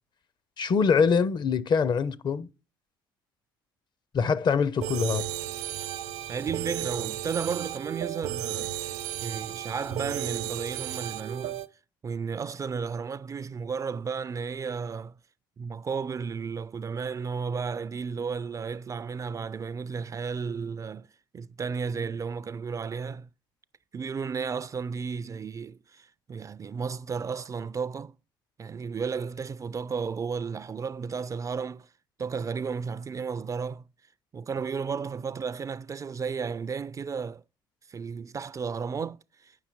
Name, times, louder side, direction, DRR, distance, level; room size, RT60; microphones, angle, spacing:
voice 1, 0.6-2.5 4.1-5.3, left 5 dB, 45° left, 0.6 m, -24 dB
sound 1, 4.8-11.7, right 13 dB, 75° right, 0.6 m, -34 dB
voice 2, 6.3-8.9 9.2-11.6 12.0-15.2 15.6-21.1 21.3-23.3 23.9-28.2 28.6-31.9 32.2-33.8 34.3-37.4 37.9-39.5, right 5 dB, 30° right, 0.3 m, -33 dB
8.2 x 5.8 x 4.5 m
hypercardioid pair, 65°, 11 cm